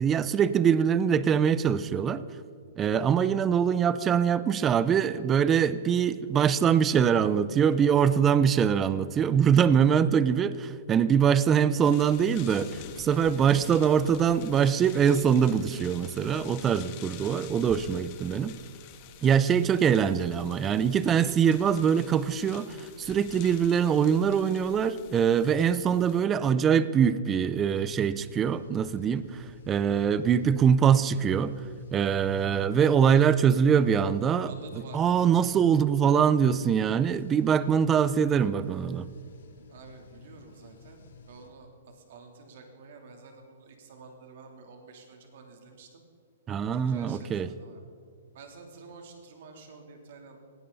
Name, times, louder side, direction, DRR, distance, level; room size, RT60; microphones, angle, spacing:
voice 1, 0.0-2.2 2.8-18.5 19.2-31.5 31.9-34.5 34.9-39.1 46.5-47.5, right 7 dB, 15° right, 16 dB, 0.5 m, -23 dB
sound 1, 11.8-26.2, left 9 dB, 30° left, 1.4 m, -48 dB
sound 2, 27.3-41.5, left 5 dB, 80° left, 2.5 m, -49 dB
voice 2, 34.4-35.6 39.7-46.0 46.5-47.8 48.3-50.4, right 4 dB, 55° right, 3 dB, 3.2 m, -49 dB
20.0 x 16.5 x 4.1 m, 2.4 s
hypercardioid pair, 160°, 0 cm